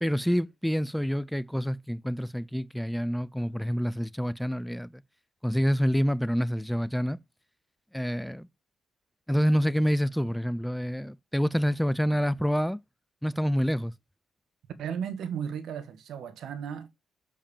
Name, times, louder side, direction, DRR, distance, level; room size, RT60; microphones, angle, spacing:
voice 1, 0.0-5.0 5.4-7.2 7.9-8.5 9.3-12.8 13.2-13.9, equal, ahead, 0.4 m, -27 dB
voice 2, 14.8-16.9, right 7 dB, 70° right, 1.6 m, -35 dB
7.1 x 5.2 x 6.9 m
cardioid pair, 90°, 0 cm